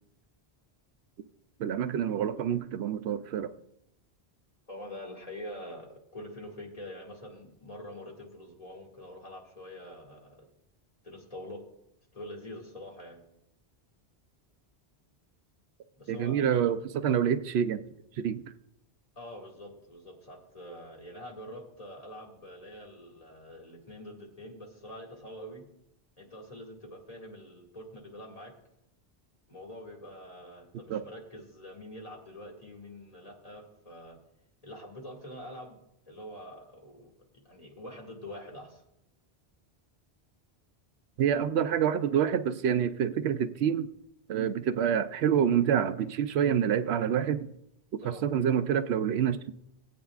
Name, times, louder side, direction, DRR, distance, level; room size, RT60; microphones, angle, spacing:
voice 1, 1.6-3.5 16.1-17.8 18.2-18.4 30.9-31.0 41.2-43.9 44.3-47.5 47.9-49.5, right 8 dB, 80° right, 12 dB, 0.8 m, -27 dB
voice 2, 4.7-10.5 11.0-11.6 12.1-13.2 16.0-16.5 19.2-25.6 26.2-28.5 29.5-34.2 34.6-35.8 36.1-37.1 37.4-38.8 48.0-48.2, left 1 dB, 35° left, -1 dB, 2.2 m, -45 dB
19.5 x 8.4 x 2.4 m, 0.79 s
omnidirectional pair, 1.1 m